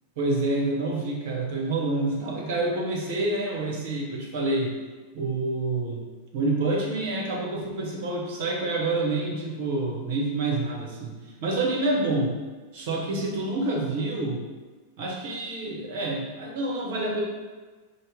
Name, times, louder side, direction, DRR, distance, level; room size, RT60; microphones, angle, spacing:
voice 1, 0.2-4.8 5.1-6.0 6.3-12.4 12.7-14.4 15.0-17.2, right 2 dB, 50° right, -1 dB, 0.7 m, -27 dB
4.0 x 2.0 x 3.5 m, 1.3 s
figure-of-eight pair, 90°, 0 cm